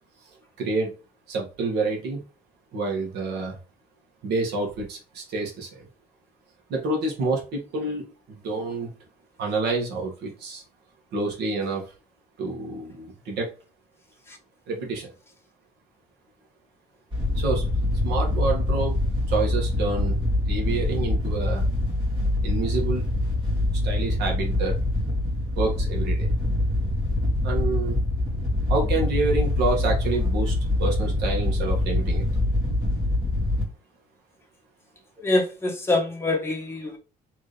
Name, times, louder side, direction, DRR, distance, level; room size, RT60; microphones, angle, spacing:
voice 1, 0.6-0.9 1.3-2.2 2.7-3.6 4.2-5.9 6.7-8.9 9.4-10.6 11.1-11.8 12.4-13.5 14.7-15.1 17.4-17.6 18.0-19.0 19.3-20.2 20.5-21.6 22.4-23.0 23.8-24.7 25.6-26.3 27.4-28.0 28.7-32.3, right 3 dB, 80° right, 1.9 m, -28 dB
Wind / Boat Water vehicle, 17.1-33.6, left 1 dB, 30° right, 2.5 m, -24 dB
voice 2, 35.2-37.0, left 2 dB, 15° left, 1.5 m, -25 dB
4.3 x 3.6 x 3.4 m
cardioid pair, 110°, 17 cm